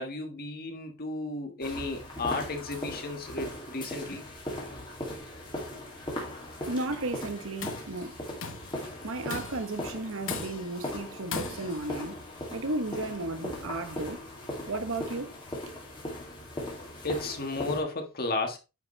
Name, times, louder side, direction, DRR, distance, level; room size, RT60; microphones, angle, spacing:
voice 1, 0.0-4.2 17.0-18.6, left 2 dB, 45° left, 1.7 m, -33 dB
sound 1, 1.6-17.8, left 1 dB, 20° left, 2.4 m, -39 dB
voice 2, 6.7-8.3 9.0-12.2 12.5-14.2 14.7-15.4, right 2 dB, 60° right, 1.1 m, -34 dB
Tools, 7.4-7.9 8.4-8.8 9.3-9.7 10.3-10.8 11.3-11.9, left 5 dB, 60° left, 1.1 m, -38 dB
9.1 x 5.2 x 3.2 m
head